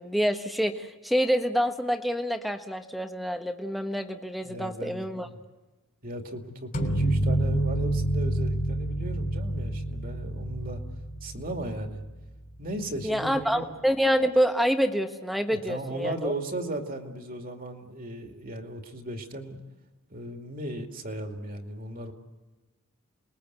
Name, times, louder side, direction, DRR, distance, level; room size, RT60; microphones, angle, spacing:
voice 1, 0.0-5.3 13.0-16.3, equal, ahead, 6 dB, 1.2 m, -27 dB
voice 2, 4.3-5.3 6.0-10.8 11.2-12.0 12.6-13.7 15.5-19.6 20.1-22.1, right 1 dB, 40° right, 4 dB, 2.5 m, -36 dB
sound 1, 6.7-12.3, right 1 dB, 40° left, 3.3 m, -28 dB
28.0 x 21.0 x 8.2 m, 1.2 s
head